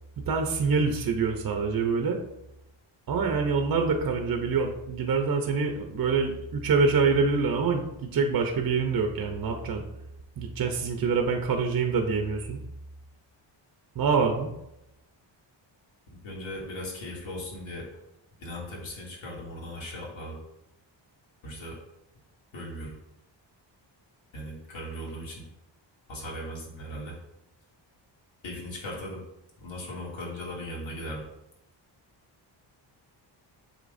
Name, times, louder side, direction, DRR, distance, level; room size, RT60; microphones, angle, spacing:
voice 1, 0.3-2.2 3.1-7.9 8.1-9.8 10.4-12.6 13.9-14.5, right 5 dB, 50° right, 4 dB, 0.8 m, -25 dB
voice 2, 16.1-17.9 18.4-20.4 21.4-21.8 22.5-22.9 24.3-25.4 26.1-27.2 28.4-29.2 29.6-31.2, left 1 dB, 80° left, -3 dB, 2.7 m, -38 dB
8.2 x 6.4 x 2.7 m, 0.87 s
wide cardioid pair, 145°, 46 cm